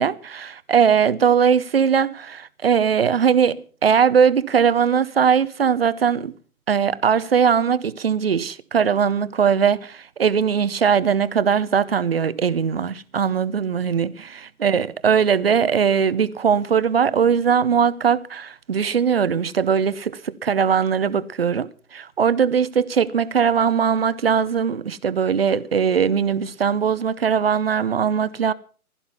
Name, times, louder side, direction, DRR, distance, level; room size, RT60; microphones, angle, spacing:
voice 1, 0.0-6.3 6.7-28.5, right 7 dB, 40° right, 0.8 m, -20 dB
16.0 x 12.0 x 5.7 m
figure-of-eight pair, 150°, 44 cm